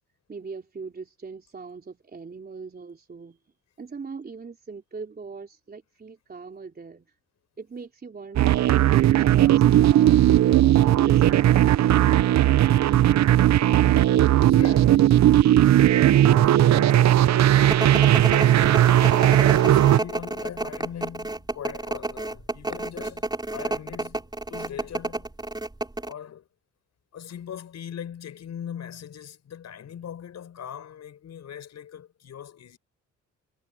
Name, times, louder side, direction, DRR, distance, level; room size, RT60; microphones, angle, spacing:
voice 1, 0.3-3.4 3.8-7.1 7.6-12.1, right 4 dB, 30° right, 3.6 m, -41 dB
sound 1, 8.4-20.0, right 12 dB, 65° right, 0.8 m, -17 dB
voice 2, 14.3-15.2 15.8-17.9 19.6-25.3 26.0-26.5 27.1-32.8, left 9 dB, 60° left, 6.3 m, -40 dB
sound 2, 17.7-26.1, right 2 dB, 15° right, 5.9 m, -30 dB
cardioid pair, 90°, 30 cm